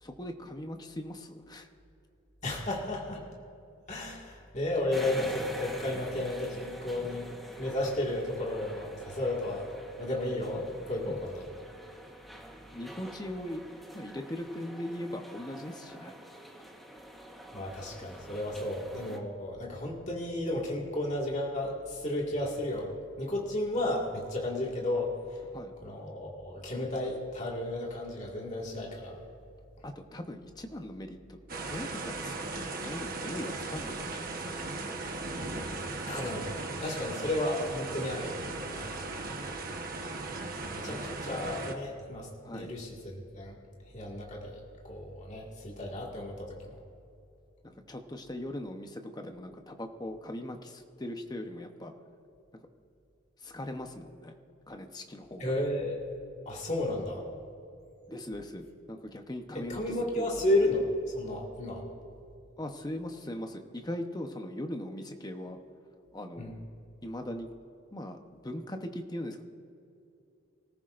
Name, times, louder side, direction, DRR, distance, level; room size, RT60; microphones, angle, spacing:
voice 1, 0.0-1.7 11.1-11.2 12.7-13.6 13.9-16.1 25.5-26.0 29.8-34.6 40.7-41.2 42.4-42.7 47.6-51.9 52.5-52.7 53.4-54.4 54.7-55.4 58.1-60.4 62.6-65.6 66.1-66.6 67.0-67.5 67.9-69.4, left 1 dB, 20° left, 5 dB, 0.9 m, -40 dB
voice 2, 2.4-3.3 3.9-7.3 7.6-9.7 10.0-11.5 17.5-25.4 25.8-29.2 35.9-38.4 38.6-39.0 40.7-43.6 43.9-46.7 55.4-56.0 56.5-57.3 59.5-61.9 66.4-66.5, left 1 dB, 35° left, -2 dB, 1.9 m, -33 dB
sound 1, 4.9-19.2, equal, ahead, 1.2 m, -46 dB
sound 2, 31.5-41.8, right 3 dB, 45° right, 1.1 m, -37 dB
25.0 x 14.5 x 2.6 m, 2.6 s
head